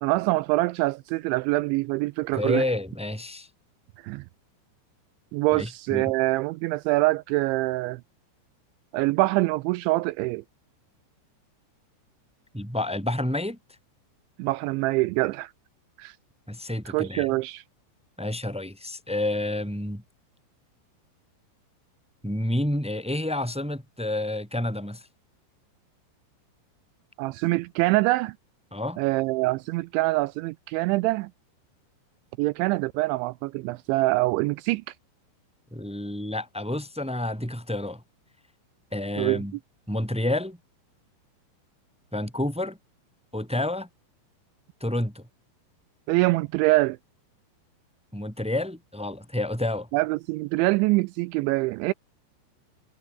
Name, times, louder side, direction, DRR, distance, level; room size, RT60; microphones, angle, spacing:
voice 1, 0.0-2.6 4.0-4.2 5.3-8.0 8.9-10.4 14.4-15.5 16.0-16.2 16.9-17.6 27.2-28.4 29.0-31.3 32.4-34.8 39.2-39.4 46.1-47.0 49.9-51.9, right 21 dB, 85° right, 2.8 m, -24 dB
voice 2, 2.3-3.5 5.5-6.1 12.5-13.6 16.5-17.3 18.2-20.0 22.2-25.1 28.7-29.0 35.7-38.0 38.9-39.5 39.9-40.6 42.1-42.8 43.3-43.9 44.8-45.3 48.1-49.9, left 1 dB, ahead, 1.5 m, -29 dB
omnidirectional pair, 5.5 m